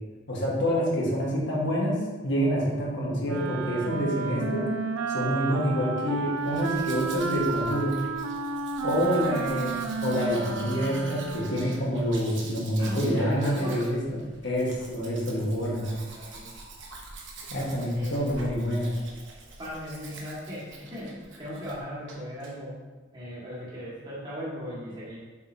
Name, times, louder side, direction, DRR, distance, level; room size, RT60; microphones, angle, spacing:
voice 1, 0.3-4.7 5.1-7.9 8.8-15.8 17.5-18.9, equal, 55° left, -3 dB, 1.5 m, -27 dB
Wind instrument woodwind instrument, 3.2-11.9, right 4 dB, 90° right, 0.5 m, -32 dB
Domestic sounds home sounds, 6.4-21.8 22.1-22.5, right 3 dB, 60° right, 1.0 m, -45 dB
voice 2, 8.8-9.3 12.8-13.9 15.8-16.5 17.9-18.2 19.6-22.7 23.1-25.2, equal, 20° right, -8 dB, 1.8 m, -37 dB
7.1 x 5.0 x 2.8 m, 1.2 s
head